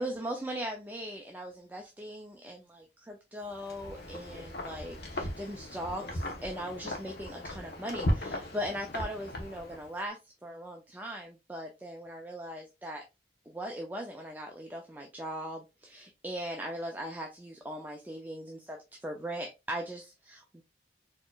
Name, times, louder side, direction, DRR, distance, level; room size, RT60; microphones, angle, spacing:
voice 1, 0.0-13.0 13.5-20.6, equal, 10° right, 1 dB, 0.4 m, -39 dB
Wind, 3.5-10.0, equal, 60° left, 1.0 m, -37 dB
4.2 x 2.9 x 2.3 m, 0.24 s
head